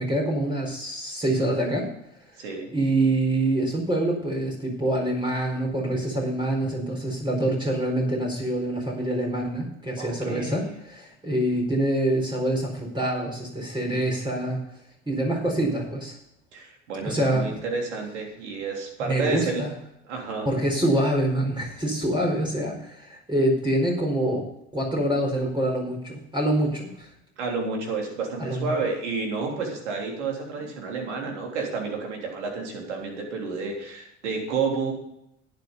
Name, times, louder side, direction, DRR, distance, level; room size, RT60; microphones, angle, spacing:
voice 1, 0.0-1.9 2.7-14.6 15.1-16.1 17.0-17.5 19.0-19.7 20.4-24.5 24.7-27.1 28.4-28.7, right 1 dB, 15° right, -1 dB, 4.5 m, -25 dB
voice 2, 2.4-2.7 10.0-10.6 16.5-19.6 20.0-20.5 27.4-34.9, right 4 dB, 80° right, 1 dB, 3.4 m, -30 dB
11.5 x 9.6 x 5.4 m, 0.78 s
hypercardioid pair, 75°, 34 cm